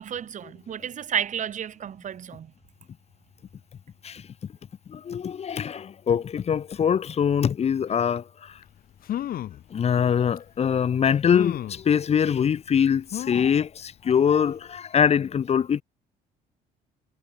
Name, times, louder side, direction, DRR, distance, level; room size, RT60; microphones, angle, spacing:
voice 1, 0.0-2.5, right 9 dB, 45° right, 2.0 m, -31 dB
voice 2, 4.9-8.6 9.7-15.8, left 7 dB, 40° left, 1.0 m, -23 dB
sound 1, 8.6-8.7 9.0-9.6 10.4-10.5 11.3-11.8 13.1-13.6 14.1-14.2 14.5-14.6, left 12 dB, 60° left, 2.0 m, -32 dB
cardioid pair, 110°, 17 cm